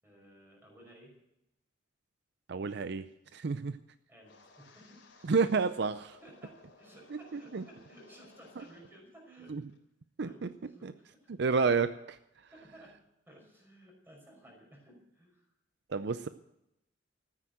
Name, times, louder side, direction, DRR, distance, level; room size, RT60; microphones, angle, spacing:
voice 1, 0.0-1.1 4.1-5.3 6.2-9.6 10.2-11.6 12.4-13.0 13.3-15.5, right 1 dB, 10° right, -1 dB, 5.6 m, -56 dB
voice 2, 2.5-3.1 3.3-3.8 5.2-6.2 7.1-7.6 9.5-9.6 10.2-10.5 10.8-10.9 11.4-12.5 15.9-16.3, right 4 dB, 60° right, 12 dB, 0.5 m, -30 dB
Wind, 4.2-9.1 9.3-9.8 10.2-10.5, left 2 dB, 70° left, 3.5 m, -60 dB
13.5 x 9.7 x 7.8 m, 0.85 s
head